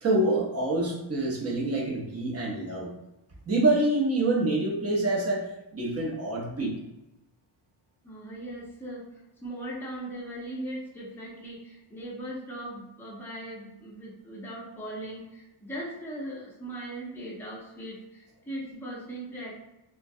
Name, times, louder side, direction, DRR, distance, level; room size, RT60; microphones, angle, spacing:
voice 1, 0.0-2.9 3.5-6.8, right 2 dB, 30° right, -2 dB, 0.7 m, -26 dB
voice 2, 8.0-19.5, right 1 dB, 5° left, -6 dB, 0.7 m, -39 dB
2.2 x 2.2 x 2.6 m, 0.92 s
cardioid pair, 105°, 49 cm